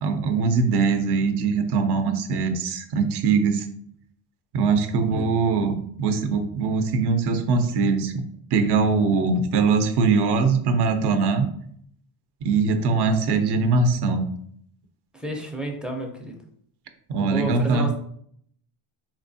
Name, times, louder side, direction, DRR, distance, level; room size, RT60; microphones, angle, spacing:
voice 1, 0.0-3.7 4.5-8.1 8.5-11.5 12.4-14.3 17.1-17.9, right 4 dB, 55° right, 7 dB, 0.6 m, -22 dB
voice 2, 15.2-16.3 17.2-17.9, right 1 dB, ahead, 2 dB, 0.4 m, -30 dB
4.2 x 3.0 x 2.6 m, 0.65 s
cardioid pair, 140°, 48 cm